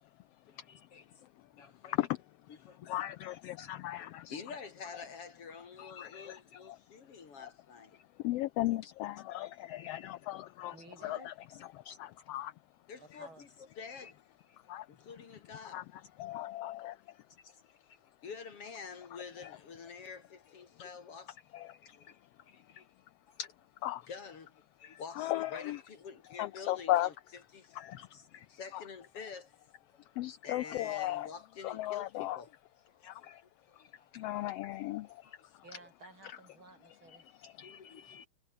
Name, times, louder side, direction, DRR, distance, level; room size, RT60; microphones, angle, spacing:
voice 1, 0.5-1.2 1.5-2.0 2.5-2.9 4.0-8.0 12.9-14.2 14.5-14.6 14.9-15.9 16.2-16.3 18.2-21.4 21.9-22.9 24.1-24.5 24.8-27.8 28.5-29.5 30.0-30.1 30.4-32.5 32.9-33.3 33.7-34.1 35.2-35.5 35.8-35.9 37.6-38.3, left 5 dB, 55° left, 3.1 m, -48 dB
voice 2, 2.9-4.3 5.8-6.4 6.7-6.8 8.2-10.7 11.0-11.3 11.8-12.5 13.9-14.0 14.7-14.9 15.7-15.8 16.2-17.0 21.5-22.0 23.4-23.5 23.8-24.0 24.8-25.8 26.4-27.1 27.8-28.5 30.2-31.3 31.6-32.4 33.0-33.4 34.1-35.2 37.4-38.3, left 15 dB, 80° left, 1.4 m, -36 dB
voice 3, 10.7-11.3 13.0-13.4 35.6-37.3, right 3 dB, 40° right, 5.8 m, -54 dB
omnidirectional pair, 3.3 m